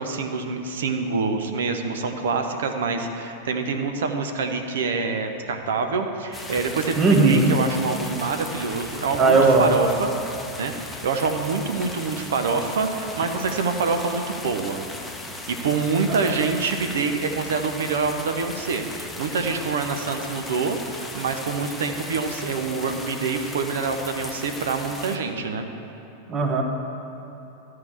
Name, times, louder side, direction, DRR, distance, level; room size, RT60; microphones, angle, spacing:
voice 1, 0.0-10.1 10.6-14.8 15.6-25.6, right 4 dB, 60° right, 6 dB, 0.8 m, -26 dB
sound 1, 6.3-25.2, left 2 dB, 5° left, 0.9 m, -37 dB
voice 2, 7.0-7.6 9.2-9.8 26.3-26.6, right 3 dB, 25° right, 3 dB, 1.2 m, -17 dB
12.5 x 4.7 x 7.2 m, 3.0 s
figure-of-eight pair, 90°, 0 cm